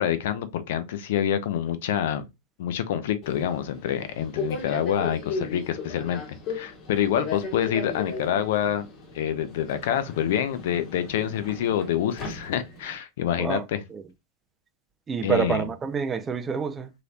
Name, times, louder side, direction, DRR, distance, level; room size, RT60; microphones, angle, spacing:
voice 1, 0.0-2.3 2.6-6.2 6.5-8.9 9.1-13.8 15.2-15.6, left 10 dB, 55° left, 0.5 m, -27 dB
Subway metro underground, 3.2-13.0, left 4 dB, 40° left, 1.2 m, -37 dB
voice 2, 15.1-16.9, right 6 dB, 20° right, 0.6 m, -27 dB
3.8 x 3.2 x 2.4 m
figure-of-eight pair, 90°, 0 cm